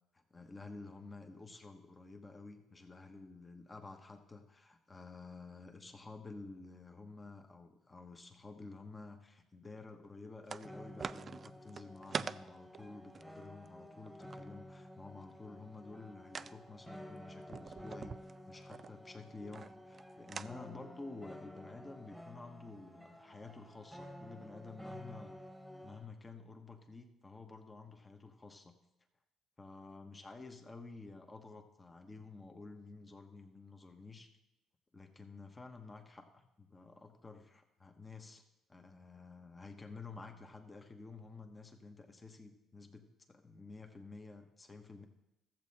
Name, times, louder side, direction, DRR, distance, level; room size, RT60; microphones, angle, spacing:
voice 1, 0.1-18.1 18.5-25.4 25.8-28.8 29.6-34.3 34.9-38.4 38.7-45.1, left 3 dB, 25° left, 4 dB, 1.2 m, -51 dB
sound 1, 10.5-10.7 11.0-14.4 16.3-16.5 17.5-18.9 19.5-20.0 20.3-20.5, right 5 dB, 40° right, 0.3 m, -43 dB
sound 2, 10.6-26.1, equal, ahead, 1.4 m, -52 dB
13.5 x 7.4 x 4.2 m, 0.91 s
supercardioid pair, 75°, 0 cm